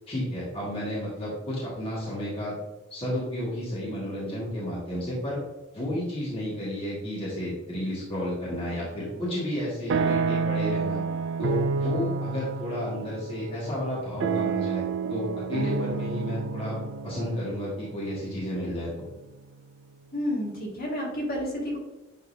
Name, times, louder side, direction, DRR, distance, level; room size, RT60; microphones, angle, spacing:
voice 1, 0.1-2.5 2.9-5.4 5.7-11.0 11.4-14.8 15.1-16.8 17.0-19.0, left 1 dB, 30° left, -7 dB, 1.8 m, -32 dB
sound 1, 8.5-9.1 9.4-19.5, right 5 dB, 60° right, 0.4 m, -30 dB
voice 2, 20.1-21.8, left 1 dB, 45° left, -4 dB, 2.1 m, -30 dB
9.2 x 3.9 x 2.7 m, 1.0 s
head